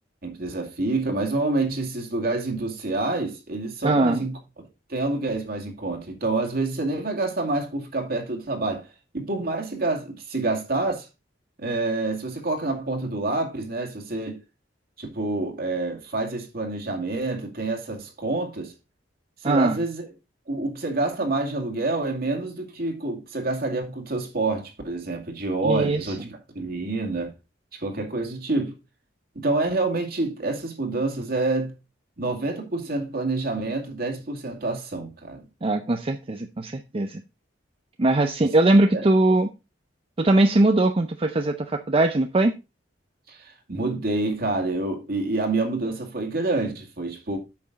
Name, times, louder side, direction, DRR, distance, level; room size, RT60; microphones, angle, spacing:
voice 1, 0.2-4.4 4.9-8.9 9.1-11.1 11.6-14.4 15.0-18.7 19.4-20.1 20.5-27.3 27.7-28.7 29.4-31.7 32.2-35.4 38.9-39.1 43.3-47.4, right 2 dB, 55° right, 2.3 m, -27 dB
voice 2, 3.8-4.2 19.4-19.8 25.6-26.2 35.6-37.2 38.0-39.5 40.2-42.6, right 2 dB, 30° right, 0.6 m, -21 dB
8.6 x 6.3 x 3.9 m
head